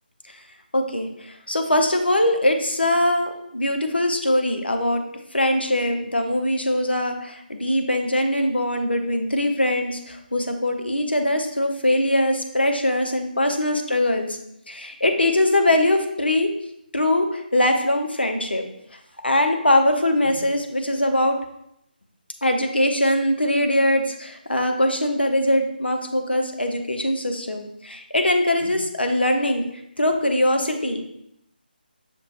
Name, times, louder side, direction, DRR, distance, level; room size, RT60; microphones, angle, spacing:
voice 1, 0.7-5.0 5.3-14.4 14.7-16.5 16.9-18.6 19.2-21.4 22.4-29.7 30.0-31.0, left 1 dB, 85° left, 4 dB, 0.7 m, -22 dB
6.1 x 2.9 x 2.9 m, 0.77 s
figure-of-eight pair, 155°, 5 cm